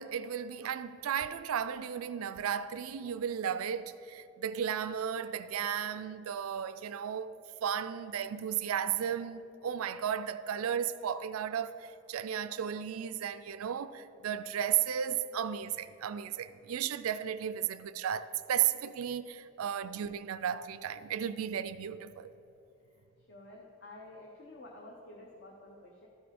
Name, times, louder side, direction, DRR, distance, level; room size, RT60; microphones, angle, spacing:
voice 1, 0.0-7.4 7.6-22.3, right 9 dB, 90° right, 0.4 m, -34 dB
voice 2, 23.3-26.1, left 2 dB, 50° left, 0.8 m, -51 dB
13.0 x 4.9 x 5.2 m
head